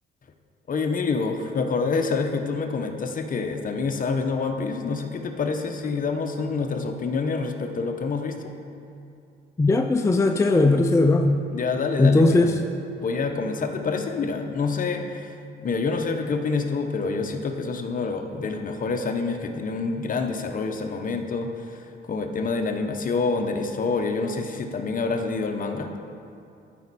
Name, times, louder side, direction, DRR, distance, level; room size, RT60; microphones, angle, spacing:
voice 1, 0.7-8.4 11.5-12.5 13.0-25.9, left 4 dB, 45° left, 5 dB, 0.9 m, -27 dB
voice 2, 9.6-11.4 12.0-12.6, left 2 dB, 15° left, 5 dB, 0.4 m, -18 dB
13.0 x 5.4 x 4.2 m, 2.6 s
cardioid pair, 90°, 20 cm